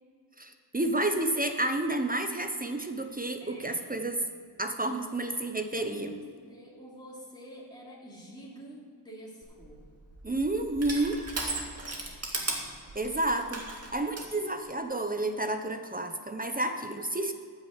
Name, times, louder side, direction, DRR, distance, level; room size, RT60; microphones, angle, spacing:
voice 1, 0.4-4.2 4.6-6.1 10.2-11.2 12.9-17.3, right 2 dB, 20° right, 6 dB, 0.9 m, -30 dB
voice 2, 3.4-3.9 5.6-9.9, equal, 10° left, -4 dB, 3.0 m, -47 dB
Crushing, 9.4-14.3, right 2 dB, 35° right, 2.1 m, -37 dB
13.5 x 6.6 x 7.4 m, 2.1 s
wide cardioid pair, 95°, 43 cm